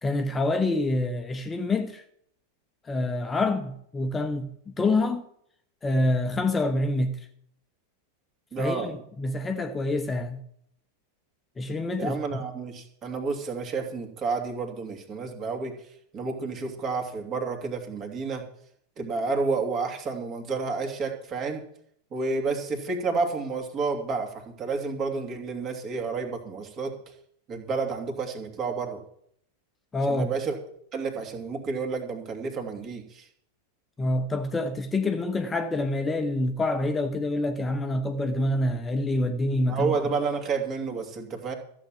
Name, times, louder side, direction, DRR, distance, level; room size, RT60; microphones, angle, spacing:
voice 1, 0.0-2.0 2.8-4.5 4.8-5.3 5.8-7.2 8.6-10.4 11.6-12.4 29.9-30.4 34.0-39.9, left 2 dB, 15° left, 1.1 m, -26 dB
voice 2, 8.5-8.9 12.0-15.7 16.1-18.4 19.0-21.6 22.1-26.9 27.5-29.0 30.1-30.6 30.9-33.3 39.6-41.5, right 4 dB, 30° right, 2.6 m, -30 dB
14.5 x 7.4 x 7.5 m
figure-of-eight pair, 90°, 0 cm